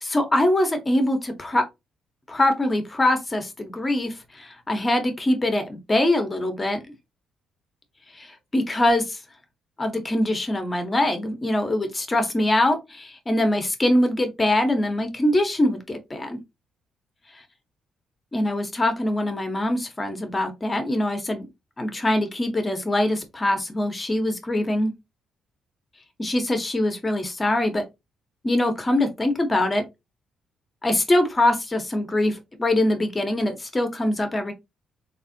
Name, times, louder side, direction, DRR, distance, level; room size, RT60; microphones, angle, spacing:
voice 1, 0.0-1.6 2.3-6.8 8.2-9.2 9.8-16.4 18.3-21.5 21.8-24.9 26.2-27.8 28.4-29.8 30.8-34.5, left 1 dB, 20° left, 0.9 m, -23 dB
3.3 x 2.5 x 2.6 m
cardioid pair, 90°, 0 cm